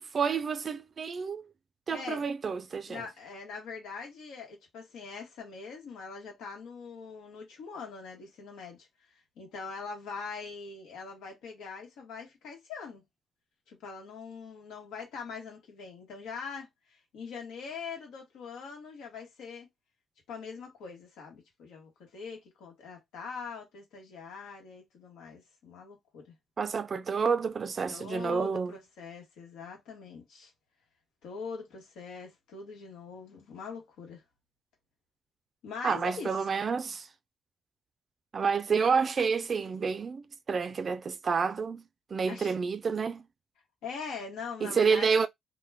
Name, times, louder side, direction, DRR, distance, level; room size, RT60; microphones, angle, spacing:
voice 1, 0.0-1.4 1.9-3.0 26.6-28.7 35.8-37.1 38.3-41.8 42.1-43.2 44.6-45.3, right 5 dB, 40° right, 0.3 m, -29 dB
voice 2, 1.9-2.3 2.9-8.9 9.4-13.0 13.7-19.7 20.3-26.3 27.9-30.5 31.2-34.2 35.6-36.4 42.3-42.5 43.8-45.1, left 5 dB, 90° left, 1.0 m, -42 dB
2.2 x 2.1 x 3.3 m
cardioid pair, 90°, 0 cm